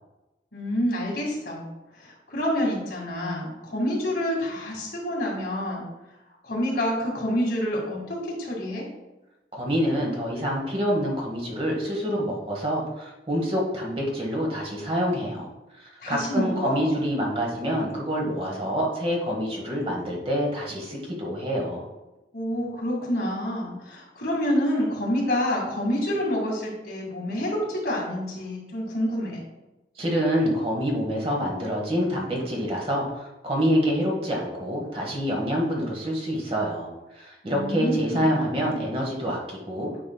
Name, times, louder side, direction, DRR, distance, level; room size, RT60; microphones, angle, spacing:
voice 1, 0.5-1.6 1.9-5.9 6.4-8.8 16.0-16.9 22.3-29.4 37.4-38.6, equal, 65° left, -3 dB, 2.1 m, -28 dB
voice 2, 9.5-15.5 15.7-21.9 30.0-36.9 37.1-39.9, equal, 30° right, -2 dB, 1.3 m, -26 dB
8.9 x 4.9 x 2.3 m, 1.0 s
head